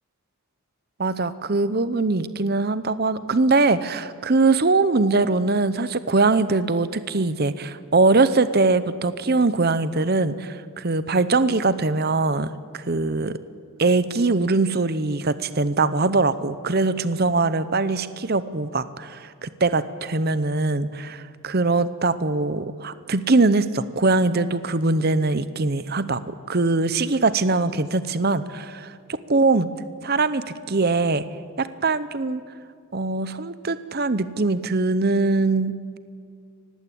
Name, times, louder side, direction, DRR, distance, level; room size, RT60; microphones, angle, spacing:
voice 1, 1.0-13.4 13.8-26.2 26.5-29.7 30.0-31.2 31.6-32.4 32.9-36.0, right 3 dB, 45° right, 14 dB, 0.8 m, -22 dB
24.5 x 19.0 x 8.6 m, 2.2 s
head